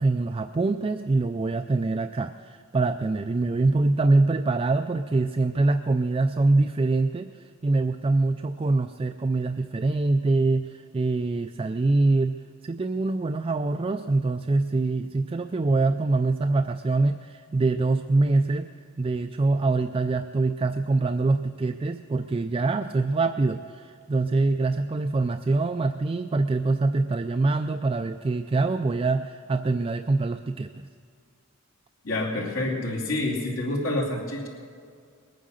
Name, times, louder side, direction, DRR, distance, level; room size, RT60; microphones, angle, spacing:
voice 1, 0.0-7.3 7.6-12.4 12.6-18.7 19.0-30.9, right 3 dB, 25° right, 8 dB, 0.3 m, -24 dB
voice 2, 32.0-34.5, left 2 dB, 80° left, -4 dB, 2.8 m, -28 dB
20.5 x 9.3 x 6.4 m, 2.2 s
head